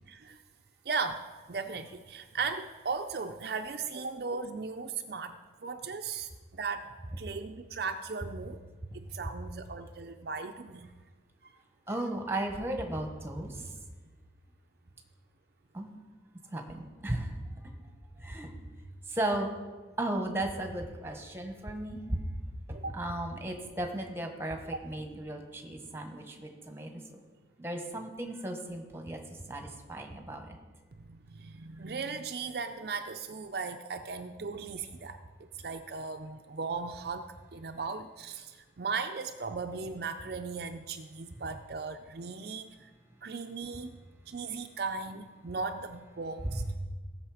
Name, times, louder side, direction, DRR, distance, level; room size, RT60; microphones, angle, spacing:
voice 1, 0.1-0.4 0.8-6.9 7.2-8.6 8.9-10.9 11.4-11.5 22.7-23.0 25.9-26.0 31.0-35.2 35.6-42.9 43.2-44.0 44.3-46.6, right 4 dB, 55° right, 6 dB, 0.5 m, -37 dB
voice 2, 11.9-13.7 15.7-15.9 16.5-17.4 18.2-18.7 19.1-19.5 20.0-22.2 22.7-27.2 27.6-30.6 46.4-46.6, right 1 dB, 15° right, 4 dB, 1.2 m, -35 dB
16.5 x 6.5 x 4.9 m, 1.3 s
head